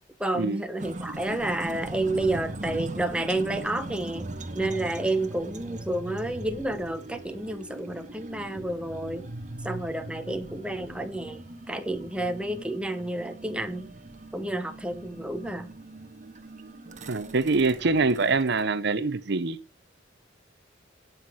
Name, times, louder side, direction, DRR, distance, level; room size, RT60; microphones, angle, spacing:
voice 1, 0.2-4.3 4.5-9.3 9.6-13.9 14.3-15.7, right 1 dB, 5° right, 1.1 m, -30 dB
sound 1, 0.8-18.6, right 1 dB, 40° right, 1.2 m, -40 dB
voice 2, 17.1-19.6, right 3 dB, 60° right, 0.7 m, -24 dB
17.5 x 5.8 x 4.7 m
head